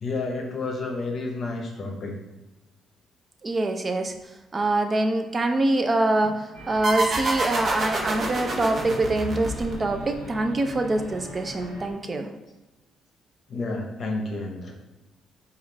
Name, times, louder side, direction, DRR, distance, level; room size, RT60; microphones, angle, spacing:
voice 1, 0.0-2.1 13.5-14.7, left 3 dB, 50° left, 1 dB, 0.7 m, -30 dB
voice 2, 3.4-4.1 4.5-6.3 6.7-12.3, right 2 dB, 30° right, 5 dB, 0.4 m, -24 dB
sound 1, 6.5-11.9, right 1 dB, 90° right, 1.0 m, -40 dB
sound 2, 6.8-10.1, right 2 dB, 55° right, 0.8 m, -27 dB
4.7 x 2.4 x 3.1 m, 1.0 s
cardioid pair, 90°, 0 cm